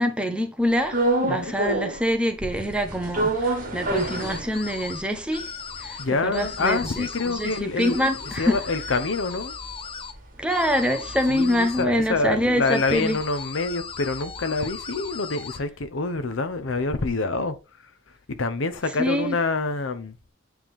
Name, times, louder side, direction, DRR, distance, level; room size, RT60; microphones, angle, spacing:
voice 1, 0.0-5.5 5.8-8.6 10.4-13.2 19.0-19.4, equal, 5° right, 0.9 m, -25 dB
sound 1, 0.9-2.1 2.4-5.0 5.4-5.5 5.7-10.2 10.5-14.5, right 2 dB, 45° right, 1.9 m, -29 dB
sound 2, 3.9-5.0 5.3-6.0 6.3-10.1 10.5-11.8 12.6-15.6, left 6 dB, 30° left, 0.6 m, -37 dB
voice 2, 6.0-8.1 8.4-9.5 11.3-17.6 18.3-20.2, left 3 dB, 90° left, 0.8 m, -26 dB
8.7 x 3.5 x 3.5 m
head